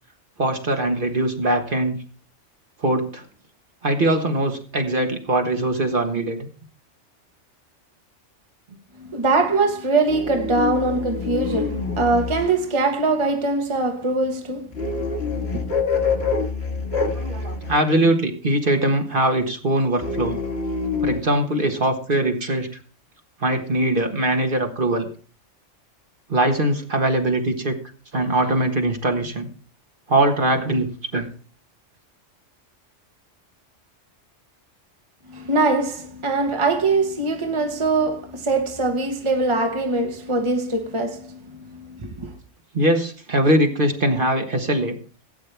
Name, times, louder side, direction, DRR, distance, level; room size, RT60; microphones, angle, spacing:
voice 1, 0.4-2.0 2.8-3.2 3.8-6.5 17.1-20.4 21.0-22.8 23.4-25.1 26.3-27.7 28.1-29.5 30.1-31.3 42.7-45.0, right 1 dB, 45° right, 1.6 m, -21 dB
voice 2, 9.0-15.0 15.5-15.6 35.3-42.3, right 3 dB, 25° right, 1.2 m, -22 dB
sound 1, 10.1-12.6 14.7-17.8 20.0-21.2, left 5 dB, 60° left, 2.0 m, -26 dB
17.0 x 8.7 x 3.4 m
omnidirectional pair, 1.2 m